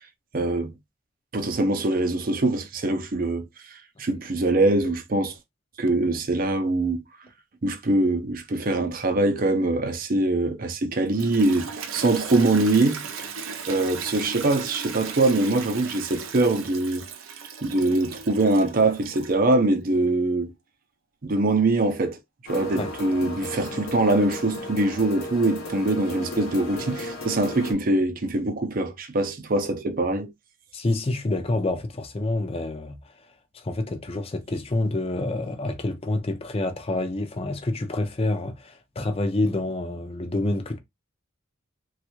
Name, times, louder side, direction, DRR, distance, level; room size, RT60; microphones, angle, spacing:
voice 1, 0.3-0.7 1.3-5.3 5.8-7.0 7.6-13.3 13.6-17.0 17.6-20.5 21.2-22.2 22.5-30.3, right 2 dB, 45° right, 0.6 m, -23 dB
Toilet flush, 10.9-19.5, right 6 dB, 90° right, 0.6 m, -37 dB
sound 1, 22.5-27.7, left 1 dB, 85° left, 0.8 m, -35 dB
voice 2, 30.7-33.3 33.5-40.8, left 2 dB, 30° left, 0.5 m, -28 dB
3.2 x 2.4 x 3.0 m
head